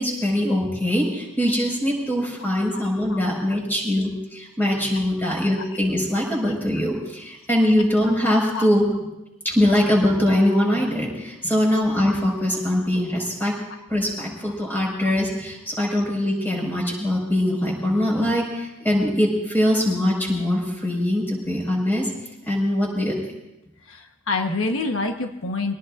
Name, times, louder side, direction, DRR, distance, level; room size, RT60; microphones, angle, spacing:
voice 1, 0.0-8.8 9.4-13.5 13.9-22.1 22.5-23.2, left 1 dB, 10° left, -2 dB, 5.5 m, -22 dB
voice 2, 23.8-25.7, left 3 dB, 85° left, 4 dB, 1.3 m, -27 dB
25.5 x 18.5 x 2.6 m, 0.93 s
head